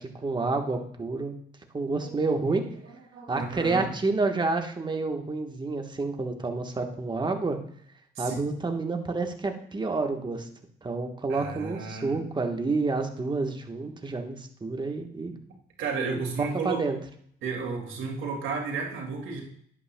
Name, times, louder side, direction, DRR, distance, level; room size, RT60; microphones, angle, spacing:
voice 1, 0.0-1.3 1.7-2.6 3.3-7.6 8.2-10.5 10.8-15.3 16.4-17.0, right 3 dB, 20° right, 4 dB, 1.2 m, -29 dB
voice 2, 3.1-3.9 8.2-8.3 11.3-12.2 15.8-16.8 17.4-19.4, right 4 dB, 80° right, 0 dB, 2.2 m, -33 dB
11.0 x 8.7 x 2.2 m, 0.65 s
cardioid pair, 90°, 20 cm